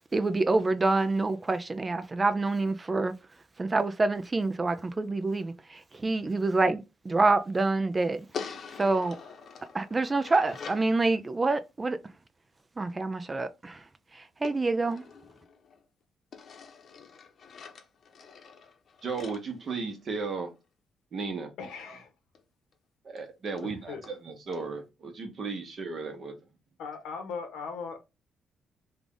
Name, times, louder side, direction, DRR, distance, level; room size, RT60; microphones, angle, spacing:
voice 1, 0.1-3.1 3.6-8.3 8.8-9.2 9.7-12.0 12.8-13.8 14.4-15.0, right 3 dB, 25° right, 0.3 m, -27 dB
sound 1, 8.3-10.9 14.4-15.8 16.3-20.4 22.3-22.4 22.7-22.8 23.2-23.3 23.6-23.7 24.0-24.2 24.5-24.6, left 6 dB, 55° left, 0.8 m, -45 dB
voice 2, 19.0-20.5 21.1-21.5 23.0-26.4, right 4 dB, 50° right, 1.1 m, -35 dB
voice 3, 21.6-22.1 23.6-24.0 26.8-28.0, left 5 dB, 85° left, 1.0 m, -38 dB
3.4 x 2.4 x 3.7 m
cardioid pair, 90°, 0 cm